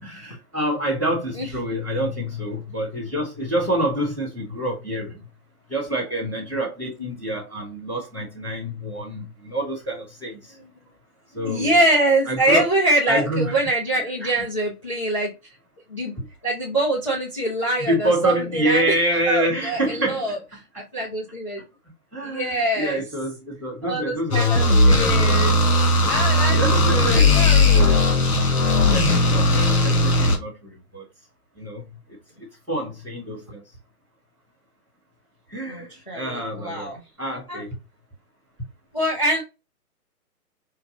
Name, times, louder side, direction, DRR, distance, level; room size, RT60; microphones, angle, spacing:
voice 1, 0.0-5.3 5.7-10.6 11.3-11.8 12.3-12.7 13.1-13.7 14.2-14.4 17.8-20.4 22.1-25.4 26.5-28.0 28.9-31.0 31.6-31.8 32.7-33.6 35.5-36.9 37.2-37.7, right 1 dB, ahead, 1.1 m, -27 dB
voice 2, 11.3-15.3 15.9-16.1 16.4-18.9 19.3-20.4 20.8-21.6 22.2-23.0 23.8-25.6 26.0-28.0 35.7-37.0 37.5-37.6 38.9-39.4, right 1 dB, 20° left, 0.6 m, -24 dB
sound 1, 24.3-30.4, left 2 dB, 75° left, 2.1 m, -17 dB
5.6 x 2.3 x 3.8 m
hypercardioid pair, 180°, 45 cm